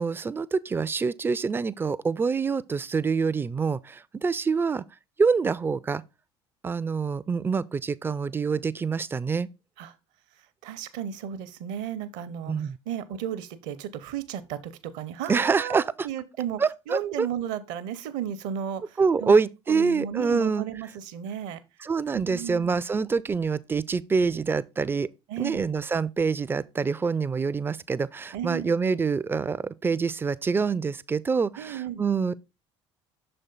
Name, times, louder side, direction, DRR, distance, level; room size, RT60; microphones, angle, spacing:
voice 1, 0.0-4.8 5.2-6.0 6.6-9.5 12.5-12.8 15.3-16.1 16.6-17.3 19.0-20.6 21.8-25.1 25.4-32.3, right 5 dB, 15° right, 0.3 m, -26 dB
voice 2, 10.6-19.4 19.7-21.6 22.1-22.8 25.3-25.7 28.3-28.7 31.6-32.0, right 9 dB, 55° right, 0.7 m, -34 dB
6.4 x 4.3 x 3.8 m
figure-of-eight pair, 60°, 15 cm